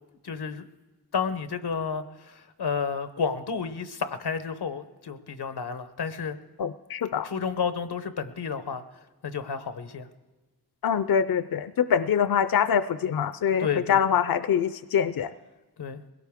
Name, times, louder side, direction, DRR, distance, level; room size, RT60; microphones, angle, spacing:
voice 1, 0.2-0.7 1.1-6.4 7.2-8.8 9.2-10.1 13.6-14.0 15.8-16.0, left 6 dB, 90° left, 11 dB, 0.9 m, -31 dB
voice 2, 6.6-7.3 10.8-15.3, left 8 dB, 65° left, 13 dB, 0.5 m, -24 dB
21.5 x 17.0 x 3.6 m, 1.2 s
cardioid pair, 50°, 39 cm